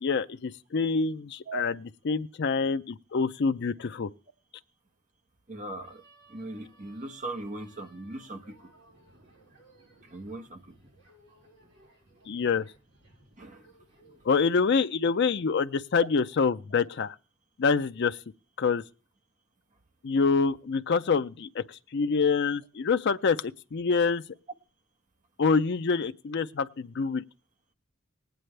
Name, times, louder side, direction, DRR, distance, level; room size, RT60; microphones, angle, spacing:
voice 1, 0.0-4.1 12.3-12.7 14.3-17.2 17.6-18.2 18.6-18.8 20.0-24.2 25.4-27.2, left 5 dB, 60° left, 0.5 m, -26 dB
voice 2, 5.5-6.0 6.3-8.7 10.1-10.7 13.4-13.6 14.0-14.2, right 2 dB, 40° right, 1.3 m, -39 dB
sound 1, 5.8-14.6, right 2 dB, 60° right, 4.7 m, -59 dB
19.0 x 9.2 x 3.3 m
head